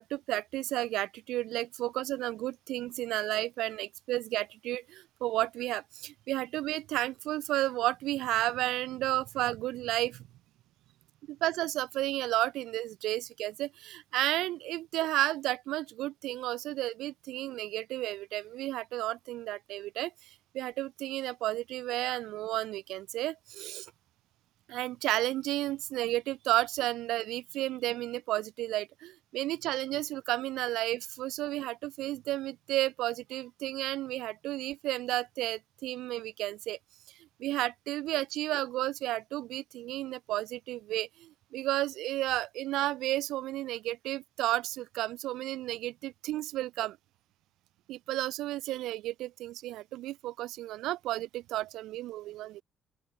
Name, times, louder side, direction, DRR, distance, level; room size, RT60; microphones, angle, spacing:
voice 1, 0.0-10.2 11.3-20.1 20.5-23.9 24.7-36.8 37.4-47.0 47.9-52.6, right 16 dB, 85° right, 0.7 m, -32 dB
open air
cardioid pair, 95°, 0 cm